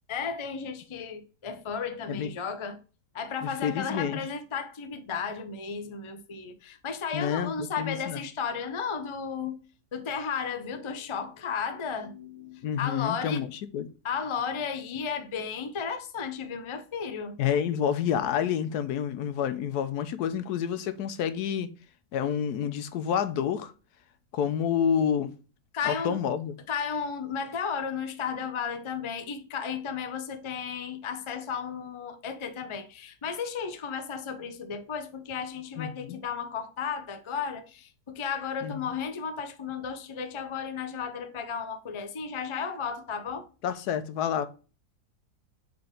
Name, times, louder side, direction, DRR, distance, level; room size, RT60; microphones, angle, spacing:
voice 1, 0.1-2.8 3.1-9.6 9.9-13.5 14.0-17.4 25.7-26.2 26.7-43.5, left 6 dB, 35° left, 0.5 m, -34 dB
voice 2, 3.4-4.2 7.1-8.2 12.6-13.9 17.4-21.7 22.1-23.7 24.3-25.3 25.8-26.6 35.8-36.2 38.6-38.8 43.6-44.5, left 8 dB, 80° left, 1.2 m, -29 dB
5.5 x 4.3 x 5.1 m
omnidirectional pair, 1.7 m